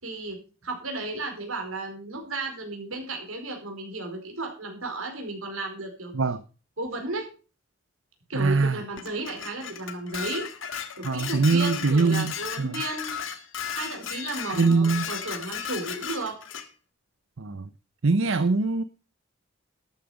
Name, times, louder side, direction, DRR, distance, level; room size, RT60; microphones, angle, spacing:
voice 1, 0.0-6.1 6.8-7.3 8.3-10.5 11.0-13.1 13.8-16.4, right 2 dB, 85° right, 3 dB, 4.8 m, -34 dB
voice 2, 8.3-8.8 11.0-12.7 14.5-15.1 17.4-17.7 18.0-18.8, right 4 dB, 65° right, 12 dB, 0.7 m, -23 dB
Dishes pots and pans, 9.0-16.7, left 8 dB, 70° left, 1.7 m, -35 dB
13.0 x 9.1 x 5.1 m, 0.35 s
head